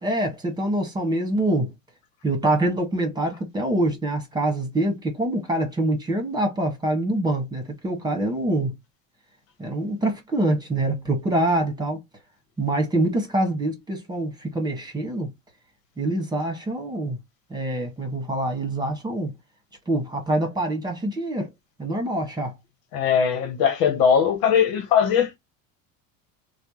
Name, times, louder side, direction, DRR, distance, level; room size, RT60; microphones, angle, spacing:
voice 1, 0.0-1.7 2.2-8.8 9.6-12.0 12.6-15.3 16.0-17.2 17.5-19.3 19.9-21.5 21.8-22.5, right 1 dB, 10° right, 1.6 m, -25 dB
voice 2, 22.9-25.4, left 7 dB, 65° left, 1.3 m, -20 dB
3.2 x 2.4 x 3.0 m
supercardioid pair, 105°, 38 cm